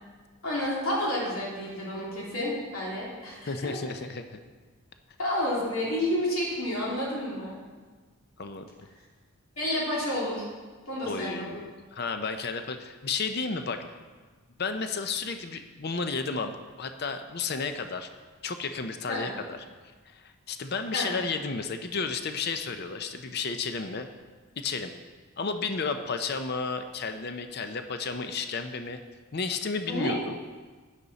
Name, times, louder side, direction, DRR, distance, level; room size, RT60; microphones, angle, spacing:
voice 1, 0.4-3.8 5.2-7.6 9.6-10.5 10.9-11.5 19.1-19.3 20.9-21.1 29.9-30.1, left 1 dB, 70° left, -5 dB, 2.9 m, -30 dB
voice 2, 3.5-4.4 8.4-8.7 11.0-13.8 14.6-16.5 16.8-18.1 18.4-19.6 20.1-24.1 24.6-24.9 25.4-29.0 29.3-30.4, left 4 dB, 45° left, 7 dB, 0.6 m, -32 dB
10.5 x 9.9 x 4.1 m, 1.4 s
head